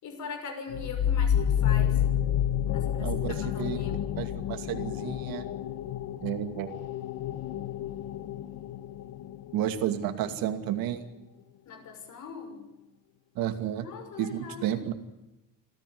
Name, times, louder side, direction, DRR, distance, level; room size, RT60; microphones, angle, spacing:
voice 1, 0.0-2.0 2.7-4.0 11.6-12.6 13.8-14.8, left 5 dB, 60° left, 6 dB, 6.2 m, -41 dB
sound 1, 0.7-10.1, left 10 dB, 80° left, 1.2 m, -29 dB
voice 2, 3.0-5.5 6.2-6.8 9.5-11.0 13.4-13.9 14.2-14.9, right 11 dB, 90° right, 8 dB, 2.5 m, -32 dB
25.5 x 15.0 x 9.5 m, 0.98 s
cardioid pair, 165°, 34 cm